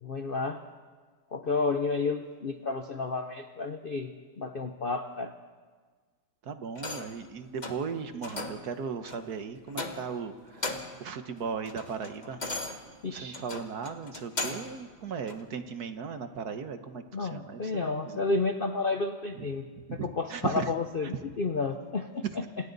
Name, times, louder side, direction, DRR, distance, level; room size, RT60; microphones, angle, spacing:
voice 1, 0.0-0.6 1.3-5.3 13.0-13.4 17.1-19.6 20.0-22.2, left 3 dB, 85° left, 7 dB, 0.4 m, -31 dB
voice 2, 6.4-12.4 13.1-18.3 19.3-19.5 19.8-20.7 22.2-22.4, right 6 dB, 55° right, 8 dB, 1.5 m, -37 dB
sound 1, 6.7-7.2 7.6-7.9 8.2-8.7 9.1-9.3 9.7-10.2 10.5-11.0 11.4-14.8 15.3-15.4, left 2 dB, 25° left, 1.3 m, -37 dB
28.5 x 26.5 x 4.0 m, 1.5 s
omnidirectional pair, 2.2 m